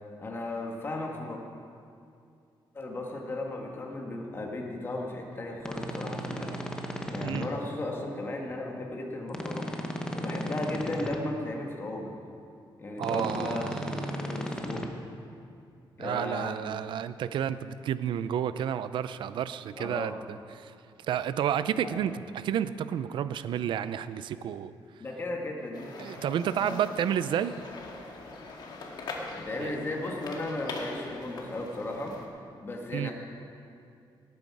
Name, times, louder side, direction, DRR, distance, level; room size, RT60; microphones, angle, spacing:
voice 1, 0.2-1.4 2.7-6.6 7.1-9.7 10.2-12.2 12.8-15.0 16.0-16.8 19.7-20.2 21.7-22.1 25.0-25.9 26.6-26.8 29.3-32.2 32.6-33.1, left 2 dB, 25° left, 0 dB, 1.7 m, -35 dB
sound 1, 5.6-7.5 9.3-11.2 13.0-14.8, equal, 10° left, 0.9 m, -35 dB
voice 2, 13.0-14.1 16.0-20.1 20.6-20.7 21.1-24.7 26.0-27.6 29.6-29.7 32.9-33.1, right 9 dB, 70° right, 14 dB, 0.5 m, -31 dB
sound 2, 25.7-32.3, left 3 dB, 55° left, 1.7 m, -42 dB
18.0 x 9.5 x 4.8 m, 2.5 s
wide cardioid pair, 170°, 9 cm